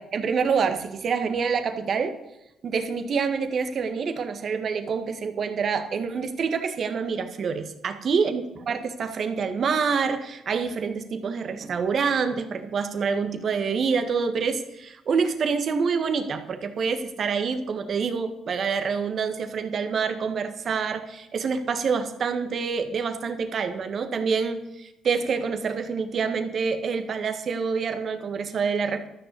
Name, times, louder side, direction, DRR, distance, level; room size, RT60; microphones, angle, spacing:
voice 1, 0.0-2.2 2.6-29.1, right 5 dB, 55° right, 8 dB, 1.7 m, -27 dB
13.0 x 6.6 x 8.4 m, 0.91 s
cardioid pair, 90°, 0 cm